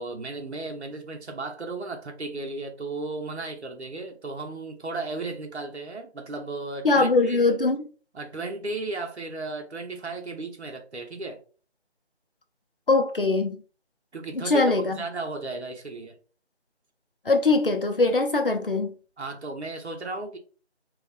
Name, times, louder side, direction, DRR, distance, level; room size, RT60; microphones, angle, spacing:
voice 1, 0.0-7.4 8.1-11.4 14.1-16.2 19.2-20.4, right 3 dB, 70° right, 1.0 m, -35 dB
voice 2, 6.8-7.8 12.9-13.6 14.3-15.0 17.3-18.9, left 3 dB, 50° left, 0.6 m, -22 dB
4.7 x 2.4 x 2.2 m
figure-of-eight pair, 170°, 34 cm